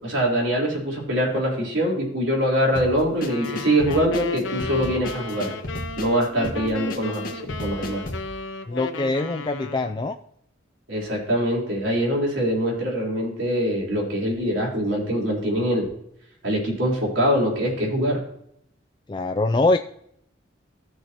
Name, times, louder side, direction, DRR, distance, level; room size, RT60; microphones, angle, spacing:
voice 1, 0.0-5.5 6.0-8.0 10.9-15.9 16.4-18.2, equal, 85° right, -3 dB, 4.1 m, -23 dB
sound 1, 2.7-8.3, left 1 dB, 50° left, 1.7 m, -33 dB
sound 2, 3.2-10.1, left 3 dB, 90° left, 1.0 m, -34 dB
voice 2, 8.7-10.2 19.1-19.8, left 2 dB, 25° left, 6 dB, 0.3 m, -23 dB
15.5 x 6.4 x 3.0 m, 0.73 s
head